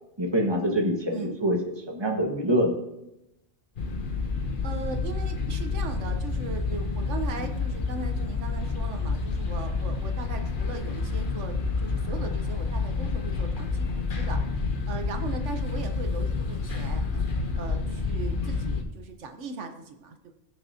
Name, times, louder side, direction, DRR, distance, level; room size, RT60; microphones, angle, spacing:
voice 1, 0.2-2.8, equal, 20° right, 0 dB, 1.6 m, -25 dB
sound 1, 3.8-18.8, left 4 dB, 50° left, 1.1 m, -29 dB
voice 2, 4.6-14.4 14.9-17.2 17.5-20.3, right 4 dB, 90° right, 5 dB, 1.3 m, -38 dB
20.5 x 6.9 x 2.8 m, 0.89 s
omnidirectional pair, 1.2 m